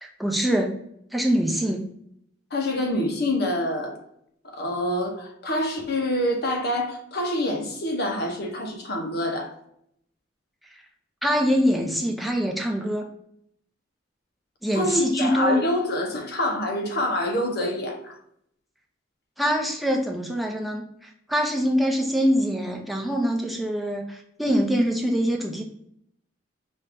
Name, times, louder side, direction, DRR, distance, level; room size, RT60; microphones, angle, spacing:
voice 1, 0.0-0.7 1.1-1.9 11.2-13.1 14.6-15.6 19.4-25.6, equal, ahead, 1 dB, 0.7 m, -24 dB
voice 2, 2.5-4.0 4.4-9.5 14.7-18.2, left 1 dB, 60° left, 2 dB, 1.0 m, -26 dB
5.3 x 2.6 x 3.4 m, 0.72 s
head